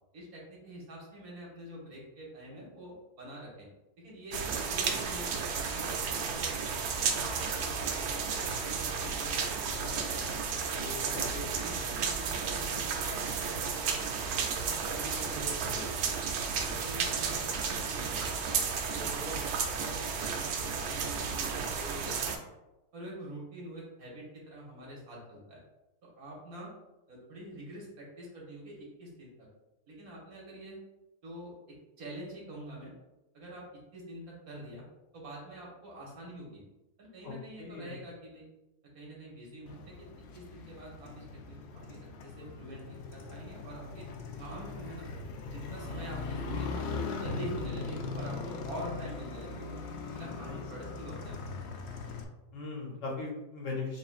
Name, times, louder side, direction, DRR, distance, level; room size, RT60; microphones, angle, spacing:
voice 1, 0.1-3.7 4.0-5.4 5.7-6.5 6.8-10.3 10.7-16.2 16.6-18.5 18.9-19.4 19.7-22.4 22.9-25.6 26.0-26.7 27.1-29.5 29.9-30.8 31.2-32.9 33.3-34.8 35.1-36.6 37.0-38.4 38.9-40.1 40.3-44.1 44.4-45.1 45.5-49.8 50.2-52.0, right 1 dB, 65° right, -4 dB, 1.8 m, -46 dB
sound 1, 4.3-22.4, right 5 dB, 80° right, 1.1 m, -33 dB
voice 2, 11.1-11.5 37.2-37.3 37.6-37.9 50.1-50.6 52.5-54.0, left 3 dB, 60° left, -2 dB, 1.1 m, -39 dB
Motorcycle, 39.7-52.2, left 3 dB, 75° left, 0.6 m, -40 dB
6.4 x 2.6 x 2.4 m, 0.99 s
omnidirectional pair, 1.7 m